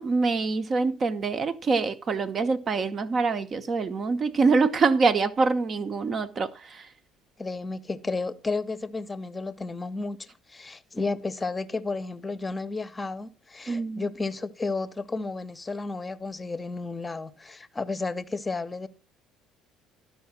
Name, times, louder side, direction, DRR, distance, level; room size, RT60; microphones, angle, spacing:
voice 1, 0.0-6.9 13.7-14.0, right 4 dB, 35° right, 0.8 m, -25 dB
voice 2, 7.4-18.9, left 3 dB, 20° left, 0.8 m, -32 dB
13.0 x 5.6 x 5.9 m
figure-of-eight pair, 55°, 0 cm